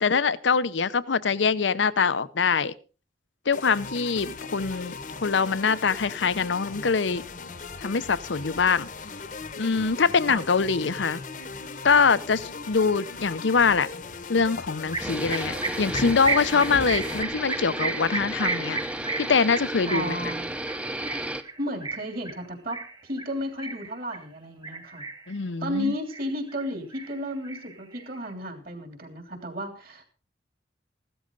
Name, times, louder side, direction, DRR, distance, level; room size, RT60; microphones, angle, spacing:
voice 1, 0.0-2.7 3.5-7.2 7.8-8.9 9.6-11.2 11.8-13.9 14.3-18.8 19.2-20.2 25.3-25.9, left 5 dB, 85° left, 17 dB, 0.7 m, -24 dB
sound 1, 3.5-17.2, left 4 dB, 45° left, 1.0 m, -39 dB
sound 2, 14.9-24.3 24.6-25.4 25.7-26.7 26.9-28.3, right 4 dB, 25° right, 1.5 m, -34 dB
sound 3, 15.0-21.4, right 1 dB, 5° right, 0.7 m, -33 dB
voice 2, 19.9-20.5 21.3-25.0 25.6-30.0, equal, 50° right, 5 dB, 3.2 m, -33 dB
16.0 x 12.5 x 3.9 m, 0.36 s
head